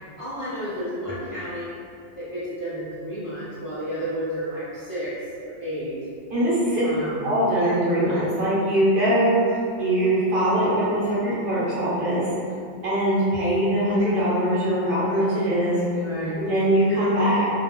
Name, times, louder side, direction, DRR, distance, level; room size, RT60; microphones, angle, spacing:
voice 1, 0.2-1.7 2.2-5.1 5.4-5.9 6.8-7.2 16.0-16.4, equal, 50° left, -11 dB, 0.4 m, -31 dB
voice 2, 6.3-6.8 7.2-12.3 12.8-16.0 16.3-17.5, right 1 dB, 55° right, -9 dB, 0.9 m, -22 dB
2.1 x 2.0 x 3.5 m, 2.4 s
omnidirectional pair, 1.2 m